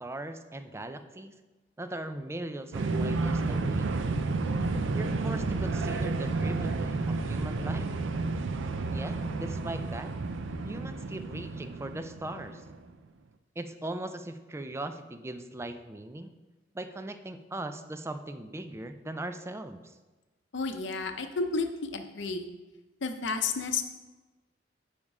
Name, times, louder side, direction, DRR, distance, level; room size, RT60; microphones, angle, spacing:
voice 1, 0.0-1.3 1.8-3.9 4.9-7.9 8.9-10.1 10.6-12.6 13.6-16.3 16.7-20.0, right 1 dB, 15° right, 9 dB, 0.4 m, -39 dB
sound 1, 2.7-12.8, right 3 dB, 80° right, 0.5 m, -31 dB
voice 2, 20.5-22.4 23.0-23.8, left 4 dB, 70° left, 7 dB, 0.7 m, -31 dB
9.6 x 3.6 x 5.4 m, 1.2 s
head